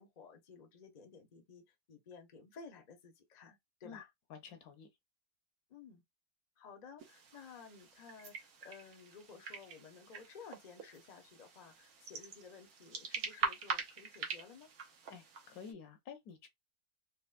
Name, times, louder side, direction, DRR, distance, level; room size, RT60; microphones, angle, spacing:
voice 1, 0.0-1.6 1.9-4.1 5.7-6.0 6.6-14.7, left 5 dB, 40° left, 0.6 m, -55 dB
voice 2, 4.3-4.9 15.1-16.5, left 6 dB, 75° left, 1.2 m, -51 dB
sound 1, 7.0-15.7, right 5 dB, 70° right, 1.2 m, -44 dB
4.2 x 2.0 x 2.4 m
omnidirectional pair, 1.6 m